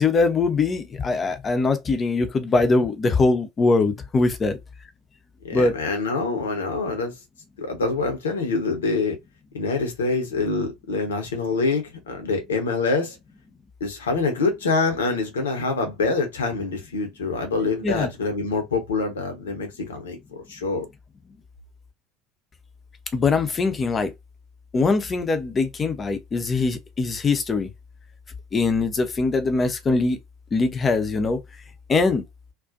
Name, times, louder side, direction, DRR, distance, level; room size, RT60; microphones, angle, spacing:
voice 1, 0.0-4.6 5.5-5.7 17.8-18.1 23.1-24.1 24.7-27.7 28.5-30.2 30.5-31.4 31.9-32.2, left 3 dB, 25° left, 0.6 m, -22 dB
voice 2, 5.4-7.1 7.6-9.2 9.5-13.2 13.8-20.9, left 3 dB, 75° left, 0.8 m, -25 dB
2.4 x 2.2 x 2.5 m
figure-of-eight pair, 70°, 0 cm